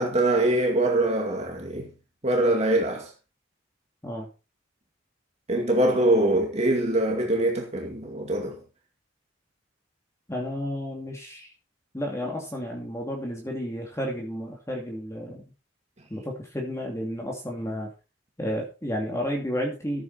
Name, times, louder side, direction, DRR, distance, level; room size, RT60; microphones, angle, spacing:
voice 1, 0.0-1.9 2.2-3.1 5.5-8.6, right 1 dB, 35° right, 2.2 m, -23 dB
voice 2, 10.3-11.5 11.9-15.4 16.1-17.9 18.4-20.0, equal, 15° left, 2.6 m, -32 dB
13.5 x 8.3 x 4.2 m
head